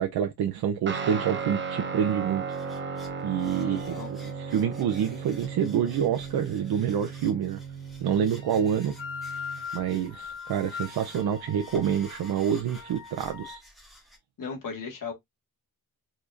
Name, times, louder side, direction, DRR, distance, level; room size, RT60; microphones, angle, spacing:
voice 1, 0.0-2.8 3.2-7.6 8.0-8.9 9.7-13.6, right 8 dB, 85° right, 0.7 m, -27 dB
Guitar, 0.9-9.7, right 5 dB, 30° right, 0.8 m, -36 dB
sound 1, 2.5-14.2, equal, ahead, 2.1 m, -52 dB
voice 2, 3.6-4.1 14.4-15.1, left 5 dB, 60° left, 1.7 m, -36 dB
sound 2, 8.3-13.6, left 6 dB, 35° left, 0.9 m, -41 dB
4.9 x 4.2 x 2.5 m
wide cardioid pair, 175°, 36 cm